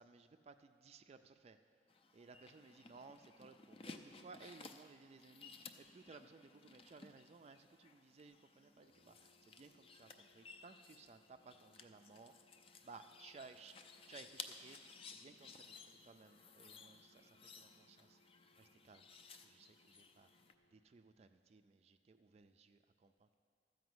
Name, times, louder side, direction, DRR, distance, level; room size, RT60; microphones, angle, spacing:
voice 1, 0.0-1.6 2.1-12.3 12.8-18.2 18.6-23.4, right 4 dB, 35° right, 8 dB, 0.3 m, -60 dB
sound 1, 1.9-20.5, left 4 dB, 30° left, 0.5 m, -58 dB
Brass instrument, 8.8-21.0, left 1 dB, 80° left, 1.4 m, -75 dB
13.0 x 5.1 x 7.8 m, 2.3 s
head